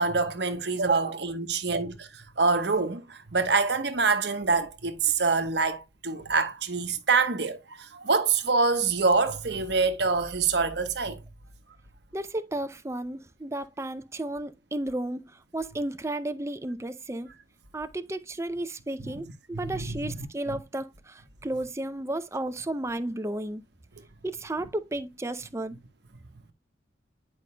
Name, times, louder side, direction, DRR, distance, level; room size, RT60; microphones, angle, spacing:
voice 1, 0.0-11.2 19.0-19.1 19.5-20.6, right 4 dB, 60° right, 1.1 m, -26 dB
voice 2, 12.1-17.3 17.7-23.6 24.2-25.8, right 1 dB, 15° right, 0.5 m, -33 dB
10.0 x 5.2 x 2.2 m
head